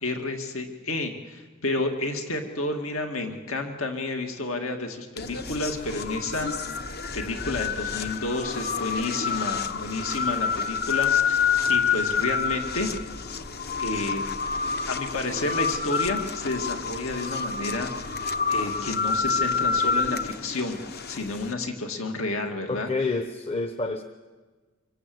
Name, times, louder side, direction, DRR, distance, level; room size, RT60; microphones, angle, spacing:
voice 1, 0.0-12.9 13.8-14.3 14.9-18.2 18.5-20.8 21.1-22.9, left 2 dB, 70° left, 4 dB, 2.3 m, -30 dB
sound 1, 5.2-21.5, left 6 dB, 50° left, 1.1 m, -28 dB
voice 2, 22.7-24.0, left 3 dB, 30° left, 7 dB, 1.0 m, -29 dB
26.0 x 23.0 x 7.9 m, 1.4 s
head